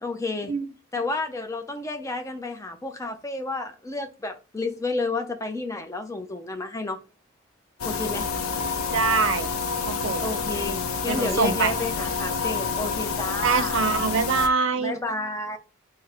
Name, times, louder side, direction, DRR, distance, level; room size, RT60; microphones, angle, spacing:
voice 1, 0.0-0.5 0.9-7.0 7.8-8.3 10.2-13.8 14.8-15.6, left 3 dB, 15° left, 0.5 m, -31 dB
sound 1, 7.8-14.5, left 5 dB, 80° left, 0.5 m, -28 dB
voice 2, 8.9-9.5 9.9-10.2 11.1-11.7 13.4-14.9, right 5 dB, 65° right, 0.5 m, -24 dB
4.1 x 2.1 x 4.2 m
head